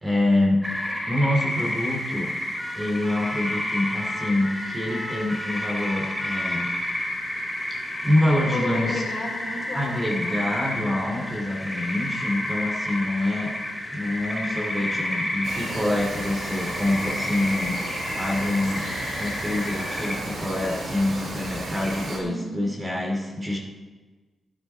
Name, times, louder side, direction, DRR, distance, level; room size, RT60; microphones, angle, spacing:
voice 1, 0.0-0.7 1.1-2.3 2.7-6.7 8.0-9.0 9.7-13.5 13.9-17.8 18.1-18.9 19.2-23.6, left 1 dB, 20° right, -1 dB, 2.5 m, -26 dB
sound 1, 0.6-20.2, left 1 dB, ahead, 2.6 m, -31 dB
sound 2, 1.5-18.1, left 1 dB, 15° left, 1.7 m, -42 dB
voice 2, 8.4-10.4 22.2-22.6, left 1 dB, 50° left, -1 dB, 4.0 m, -33 dB
Bird vocalization bird call bird song, 15.4-22.2, right 2 dB, 60° right, 4.5 m, -34 dB
14.5 x 11.5 x 4.4 m, 1.3 s
cardioid pair, 110°, 0 cm